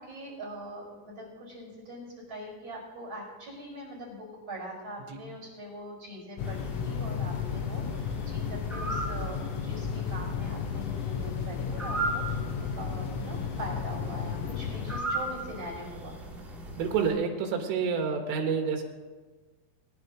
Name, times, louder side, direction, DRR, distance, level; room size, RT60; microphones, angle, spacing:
voice 1, 0.0-16.2, right 1 dB, 25° right, -7 dB, 5.4 m, -42 dB
sound 1, 6.4-15.0, left 7 dB, 80° left, 3.2 m, -33 dB
sound 2, 6.4-17.1, right 2 dB, ahead, 1.3 m, -38 dB
voice 2, 16.8-18.8, right 6 dB, 80° right, 3 dB, 4.0 m, -28 dB
22.0 x 10.5 x 3.1 m, 1.3 s
omnidirectional pair, 5.7 m